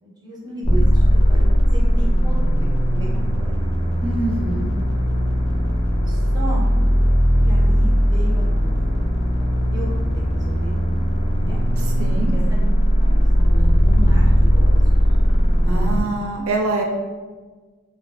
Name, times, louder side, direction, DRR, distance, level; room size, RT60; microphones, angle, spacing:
voice 1, 0.0-2.7 2.9-3.5 6.1-6.7 7.4-9.1 9.4-10.8 11.4-11.6 12.3-12.6 13.0-14.8, right 1 dB, 20° right, -5 dB, 0.5 m, -34 dB
sound 1, 0.6-16.0, equal, 30° left, 0.4 m, -18 dB
voice 2, 4.0-4.7 12.0-12.3 15.7-16.8, right 2 dB, 80° right, 1 dB, 0.4 m, -24 dB
2.5 x 2.3 x 2.2 m, 1.4 s
head